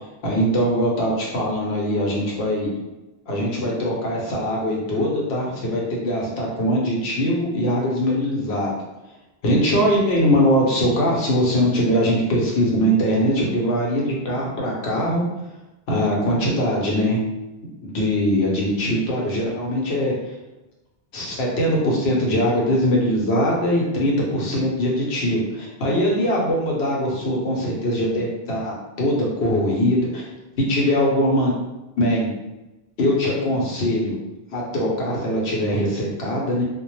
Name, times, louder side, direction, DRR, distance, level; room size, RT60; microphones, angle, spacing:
voice 1, 0.2-2.7 3.3-8.7 9.4-15.2 15.9-17.2 17.8-20.3 21.1-30.3 30.6-31.5 32.0-32.3 33.0-34.2 34.5-36.6, equal, 75° left, -3 dB, 0.9 m, -21 dB
2.1 x 2.0 x 3.0 m, 1.0 s
omnidirectional pair, 1.1 m